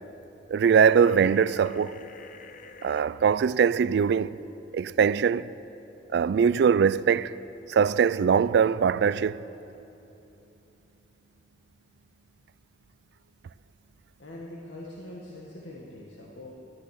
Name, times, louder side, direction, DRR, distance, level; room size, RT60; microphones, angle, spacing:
voice 1, 0.5-2.0 2.8-4.4 4.7-5.5 6.1-7.3 7.7-9.4, right 7 dB, 65° right, 0.3 m, -22 dB
sound 1, 0.8-3.0, left 4 dB, 45° left, 0.7 m, -48 dB
voice 2, 14.2-16.5, left 1 dB, 80° left, 1.5 m, -43 dB
12.5 x 10.5 x 7.9 m
head